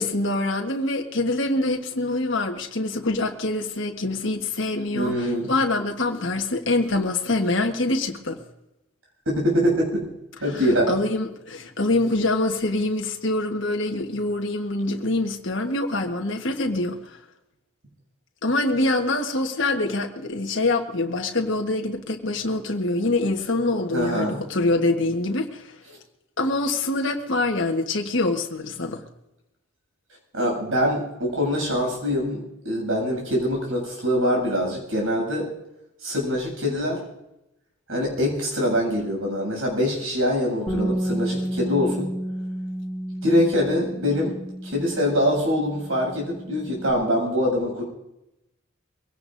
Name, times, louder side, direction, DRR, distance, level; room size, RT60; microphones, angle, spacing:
voice 1, 0.0-8.4 10.5-10.6 10.9-17.2 18.4-25.7 26.4-29.0, left 2 dB, 65° left, 1.3 m, -25 dB
voice 2, 4.9-5.5 9.3-10.1 10.4-11.0 23.9-24.4 30.3-35.5 36.0-37.0 37.9-42.1 43.2-44.3 44.6-47.8, equal, 85° right, 7.5 m, -24 dB
Bass guitar, 40.7-46.9, right 1 dB, 15° left, 5.0 m, -31 dB
23.0 x 17.5 x 2.6 m
head